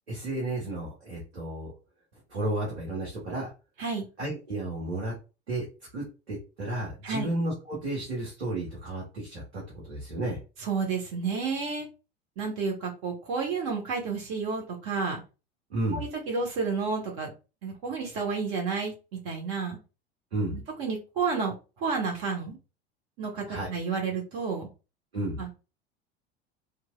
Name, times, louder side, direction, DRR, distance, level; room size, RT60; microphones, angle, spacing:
voice 1, 0.1-1.7 2.3-3.5 4.2-5.1 5.5-5.7 5.9-10.4 15.7-16.0 20.3-20.6 23.5-23.7 25.1-25.4, right 1 dB, 75° right, -5 dB, 1.2 m, -32 dB
voice 2, 10.6-11.9 12.4-15.2 15.9-17.3 17.6-19.8 20.5-22.6 23.2-24.7 25.4-25.5, right 5 dB, 45° right, 1 dB, 1.0 m, -31 dB
2.9 x 2.5 x 2.2 m, 0.31 s
figure-of-eight pair, 75°, 32 cm